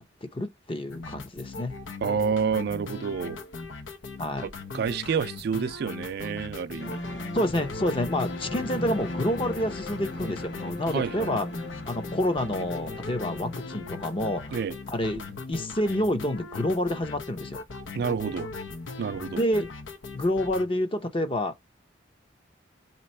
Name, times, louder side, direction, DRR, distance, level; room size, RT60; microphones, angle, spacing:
voice 1, 0.0-1.7 4.2-4.5 7.3-11.5 11.9-14.6 14.9-17.6 19.4-19.7 20.1-21.6, left 1 dB, 30° left, 0.6 m, -28 dB
sound 1, 0.9-20.7, left 4 dB, 90° left, 0.9 m, -39 dB
voice 2, 2.0-3.4 4.4-7.0 10.9-11.4 14.5-14.7 17.9-18.5 19.0-19.4, right 6 dB, 55° right, 0.3 m, -29 dB
sound 2, 6.8-16.0 16.2-16.4, left 1 dB, 70° left, 1.1 m, -38 dB
3.4 x 3.0 x 4.2 m
head